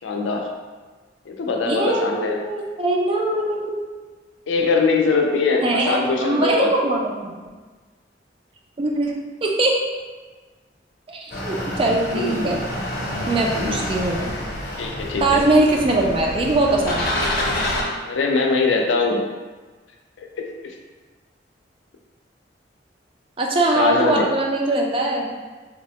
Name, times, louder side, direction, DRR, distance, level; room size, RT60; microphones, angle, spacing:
voice 1, 0.0-0.4 1.3-2.4 4.5-6.7 12.1-12.5 13.5-13.9 14.8-15.4 18.1-19.2 20.2-20.5 23.8-24.2, left 4 dB, 90° left, 1 dB, 0.4 m, -22 dB
voice 2, 1.6-3.7 5.6-7.3 8.8-9.1 9.4-9.8 11.1-12.6 13.3-14.3 15.2-17.1 23.4-25.3, right 2 dB, 30° right, 0 dB, 0.4 m, -21 dB
sound 1, 11.3-17.8, left 1 dB, 55° left, 0.7 m, -27 dB
3.4 x 2.0 x 2.9 m, 1.3 s
head